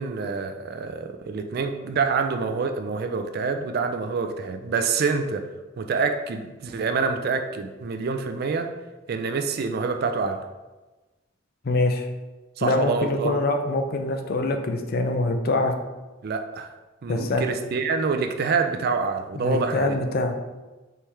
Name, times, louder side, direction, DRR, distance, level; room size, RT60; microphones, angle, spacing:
voice 1, 0.0-5.5 5.8-8.7 9.1-10.4 12.6-13.4 16.2-16.7 17.0-20.0, right 4 dB, 55° right, 7 dB, 0.4 m, -26 dB
voice 2, 11.6-12.1 12.6-15.7 17.1-17.4 19.3-20.3, left 2 dB, 50° left, 5 dB, 0.5 m, -24 dB
4.5 x 3.5 x 3.1 m, 1.2 s
head